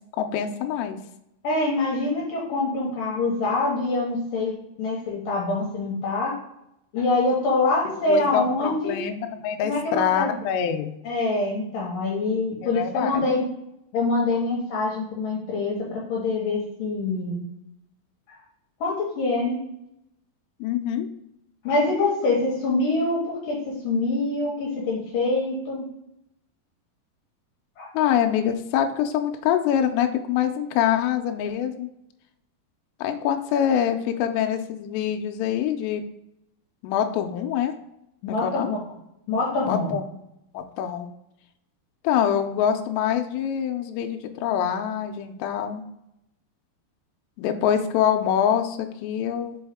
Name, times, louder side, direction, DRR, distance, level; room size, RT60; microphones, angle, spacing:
voice 1, 0.2-1.0 8.1-10.9 12.6-13.2 20.6-21.1 27.9-31.9 33.0-36.0 36.8-37.7 38.3-38.7 39.7-40.1 40.5-41.1 42.0-45.8 47.4-49.6, left 9 dB, 85° left, 5 dB, 2.8 m, -25 dB
voice 2, 1.4-6.3 6.9-9.0 9.6-10.3 11.0-13.5 13.9-17.4 18.3-18.4 18.8-19.6 21.6-25.9 27.8-27.9 38.2-38.8 39.3-40.0, left 2 dB, 70° left, -3 dB, 2.4 m, -25 dB
5.4 x 5.3 x 3.5 m, 0.80 s
omnidirectional pair, 4.9 m